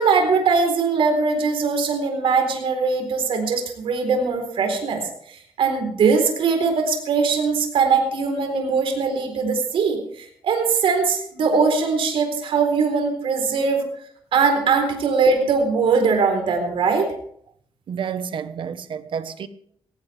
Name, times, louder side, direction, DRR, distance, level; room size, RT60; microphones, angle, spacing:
voice 1, 0.0-5.0 5.3-13.8 14.3-17.1, right 5 dB, 80° right, 4.0 m, -21 dB
voice 2, 17.9-19.5, right 7 dB, 65° right, 1.2 m, -30 dB
18.5 x 17.5 x 3.5 m
cardioid pair, 105°, 9 cm